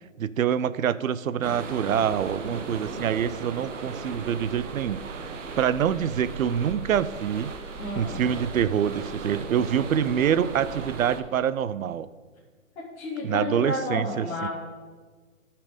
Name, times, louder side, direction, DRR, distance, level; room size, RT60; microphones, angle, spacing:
voice 1, 0.2-7.5 8.0-12.1 13.2-14.5, right 9 dB, 80° right, 16 dB, 0.6 m, -26 dB
sound 1, 1.4-11.2, right 4 dB, 60° right, 1.2 m, -37 dB
voice 2, 7.8-8.2 12.8-14.5, left 2 dB, 5° left, -8 dB, 0.6 m, -31 dB
13.0 x 5.9 x 5.1 m, 1.5 s
hypercardioid pair, 155°, 41 cm